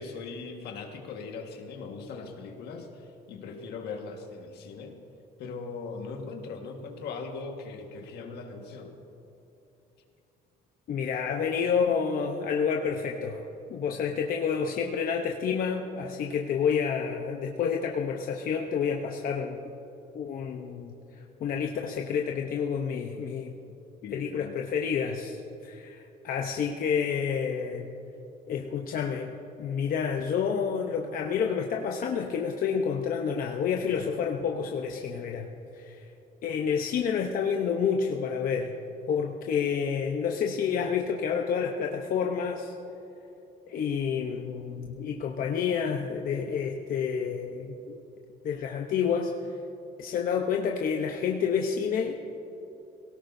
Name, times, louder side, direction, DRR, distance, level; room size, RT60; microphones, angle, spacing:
voice 1, 0.0-5.0 5.4-9.0 24.0-24.7, left 4 dB, 75° left, 3 dB, 1.6 m, -39 dB
voice 2, 10.9-13.4 13.7-19.6 20.1-20.9 21.4-23.6 24.1-27.9 28.5-35.5 35.7-36.0 36.4-38.7 39.1-42.7 43.7-48.0 48.4-49.3 50.0-52.2, left 6 dB, 55° left, 2 dB, 0.9 m, -29 dB
18.5 x 17.5 x 2.7 m, 2.9 s
cardioid pair, 110°, 17 cm